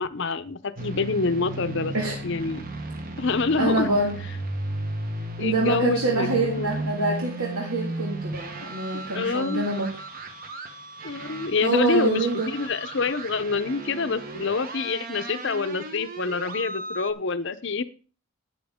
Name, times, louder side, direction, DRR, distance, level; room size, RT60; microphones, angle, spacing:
voice 1, 0.0-1.9 2.2-2.6 3.2-3.9 5.4-6.7 9.1-9.7 11.0-17.8, left 4 dB, 55° left, 12 dB, 0.7 m, -26 dB
sound 1, 0.8-17.1, right 2 dB, 40° right, 1.2 m, -35 dB
voice 2, 3.6-4.2 5.4-9.9 11.6-12.5, right 3 dB, 85° right, -1 dB, 2.1 m, -25 dB
11.5 x 9.3 x 3.6 m, 0.36 s
head